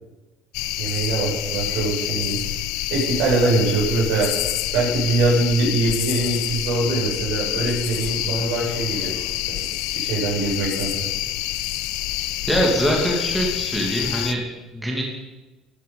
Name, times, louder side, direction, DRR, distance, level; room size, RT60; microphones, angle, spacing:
sound 1, 0.5-14.3, left 14 dB, 80° left, 0.8 m, -27 dB
voice 1, 0.8-2.4 2.9-4.4 4.7-9.1 9.5-9.6 9.9-11.1, right 3 dB, 80° right, -2 dB, 5.8 m, -23 dB
voice 2, 12.5-14.4 14.7-15.0, equal, 5° right, -2 dB, 2.4 m, -23 dB
13.5 x 11.5 x 5.4 m, 1.2 s
cardioid pair, 150°, 0 cm